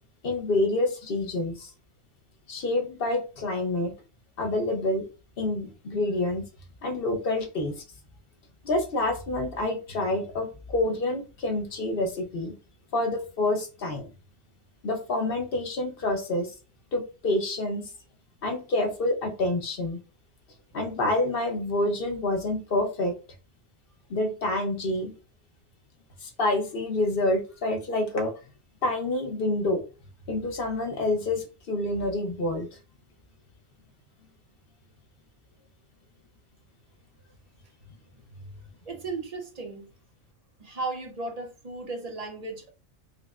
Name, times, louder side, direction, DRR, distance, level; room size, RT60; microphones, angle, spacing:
voice 1, 0.2-1.7 2.5-3.9 4.4-5.1 5.4-6.5 6.8-7.7 8.6-12.5 12.9-14.1 14.8-16.5 16.9-17.9 18.4-20.0 20.7-23.1 24.1-25.1 26.2-28.3 28.8-29.8 30.3-32.7, left 2 dB, 50° left, 0.9 m, -27 dB
voice 2, 38.9-39.9 40.6-42.7, right 3 dB, 40° right, 0.6 m, -35 dB
4.9 x 2.2 x 2.4 m
omnidirectional pair, 1.4 m